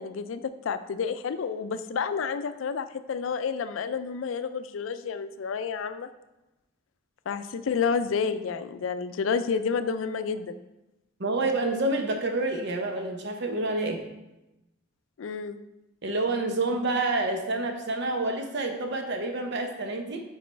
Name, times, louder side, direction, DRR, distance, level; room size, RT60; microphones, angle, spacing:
voice 1, 0.0-6.1 7.3-10.5 15.2-15.6, left 6 dB, 75° left, 11 dB, 0.4 m, -30 dB
voice 2, 11.2-14.0 16.0-20.2, right 2 dB, 60° right, 4 dB, 0.8 m, -28 dB
5.2 x 4.9 x 4.4 m, 0.97 s
head